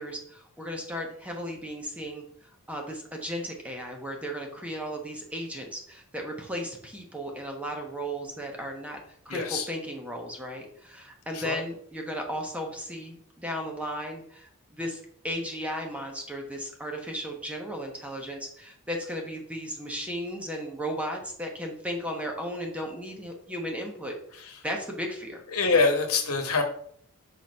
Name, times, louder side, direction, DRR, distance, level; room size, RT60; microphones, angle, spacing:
voice 1, 0.0-2.2 2.7-9.0 9.2-25.4, equal, 5° right, 1 dB, 1.1 m, -35 dB
voice 2, 9.3-9.7 11.3-11.5 25.5-26.6, left 4 dB, 75° left, 4 dB, 1.2 m, -24 dB
6.0 x 4.0 x 5.4 m, 0.63 s
head